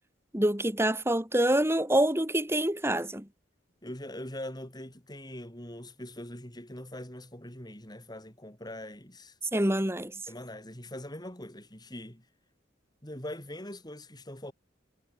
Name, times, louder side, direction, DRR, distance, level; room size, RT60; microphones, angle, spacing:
voice 1, 0.3-3.3 9.5-10.2, right 1 dB, 15° right, 3.4 m, -26 dB
voice 2, 3.8-9.3 10.3-12.2 13.0-14.5, left 1 dB, 20° left, 7.9 m, -42 dB
head